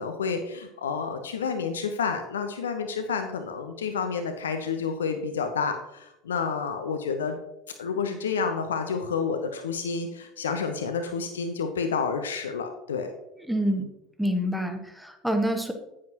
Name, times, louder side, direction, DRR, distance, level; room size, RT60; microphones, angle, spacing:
voice 1, 0.0-7.4 7.8-13.1, left 5 dB, 70° left, 6 dB, 0.8 m, -29 dB
voice 2, 13.5-13.9 14.2-15.7, equal, ahead, 5 dB, 1.4 m, -27 dB
9.6 x 9.5 x 2.9 m, 0.90 s
figure-of-eight pair, 75°, 0 cm